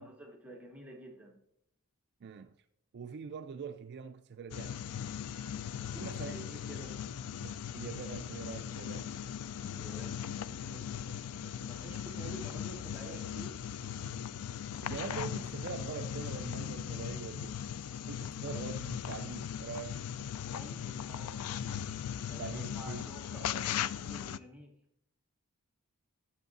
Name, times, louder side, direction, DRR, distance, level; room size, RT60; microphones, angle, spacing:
voice 1, 0.0-1.4 6.2-7.0 9.7-13.6 20.4-21.4 22.3-24.8, right 1 dB, 5° right, 1.0 m, -50 dB
voice 2, 2.2-2.5 2.9-4.8 5.9-6.5 7.3-9.1 14.8-17.6 18.1-20.0 22.4-23.0 23.4-23.5, right 6 dB, 50° right, 0.4 m, -43 dB
sound 1, 4.5-24.4, left 9 dB, 80° left, 0.4 m, -39 dB
sound 2, 5.1-18.1, left 1 dB, 15° left, 1.5 m, -62 dB
12.0 x 7.2 x 4.0 m
head